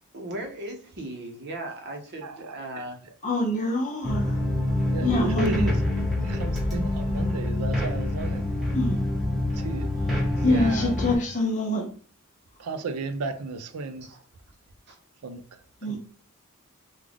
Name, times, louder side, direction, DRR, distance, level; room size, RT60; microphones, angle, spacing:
voice 1, 0.1-3.0 10.4-10.9 14.0-14.2 14.9-15.0, right 1 dB, 50° right, 0.8 m, -36 dB
voice 2, 2.2-2.8 4.9-5.8 6.2-8.5 9.5-9.9 12.6-14.1 15.2-15.4 15.8-16.0, right 3 dB, 85° right, 0.5 m, -33 dB
voice 3, 3.2-4.4 5.0-5.7 8.7-9.0 10.4-11.9 15.8-16.0, left 1 dB, 35° left, 0.8 m, -25 dB
sound 1, 4.0-11.2, left 1 dB, ahead, 1.1 m, -26 dB
3.5 x 2.3 x 3.4 m
head